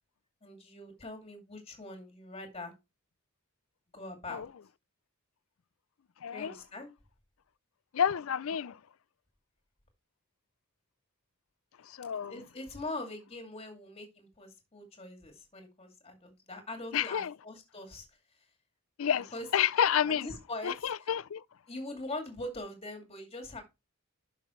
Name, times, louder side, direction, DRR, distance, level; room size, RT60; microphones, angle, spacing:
voice 1, 0.4-2.7 3.9-4.5 6.3-6.9 12.3-18.1 19.1-19.5 20.1-20.9 21.7-23.6, left 2 dB, 25° left, 2.5 m, -42 dB
voice 2, 6.2-6.6 7.9-8.8 11.8-12.4 16.9-17.3 19.0-20.3 20.6-21.4, left 8 dB, 65° left, 0.4 m, -30 dB
11.5 x 5.9 x 3.2 m
head